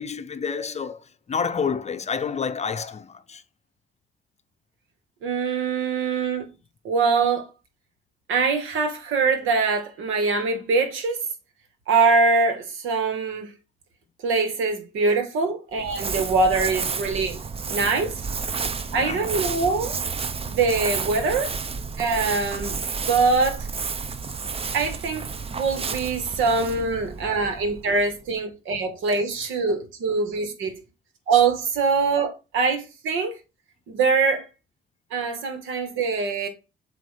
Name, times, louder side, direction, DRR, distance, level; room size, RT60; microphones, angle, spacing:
voice 1, 0.0-3.4 18.9-19.5, left 6 dB, 35° left, 0.6 m, -29 dB
voice 2, 5.2-6.5 6.8-7.5 8.3-11.2 11.9-13.5 14.2-17.4 17.7-18.2 18.9-20.0 20.5-21.5 22.0-23.7 24.7-25.3 25.5-30.8 31.3-33.4 33.9-34.5 35.1-36.5, right 4 dB, 85° right, 1.5 m, -23 dB
Crumpling crinkling, 15.7-28.2, right 5 dB, 30° right, 0.5 m, -31 dB
7.6 x 2.6 x 4.9 m
cardioid pair, 90°, 20 cm